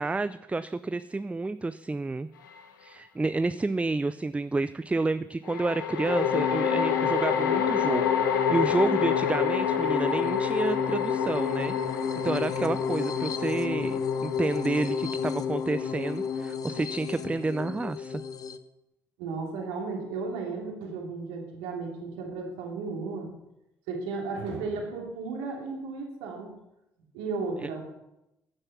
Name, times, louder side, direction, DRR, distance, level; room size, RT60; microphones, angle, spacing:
voice 1, 0.0-2.3 2.8-18.2 27.6-27.7, right 3 dB, 10° right, 14 dB, 0.5 m, -30 dB
sound 1, 2.5-2.6 5.4-16.8, left 8 dB, 75° left, 1.0 m, -30 dB
sound 2, 6.1-18.6, left 6 dB, 35° left, 1.1 m, -30 dB
voice 2, 19.2-23.3 23.9-26.5 27.1-27.8, right 4 dB, 65° right, 0 dB, 2.8 m, -34 dB
16.5 x 9.8 x 5.9 m, 0.89 s
figure-of-eight pair, 50°, 11 cm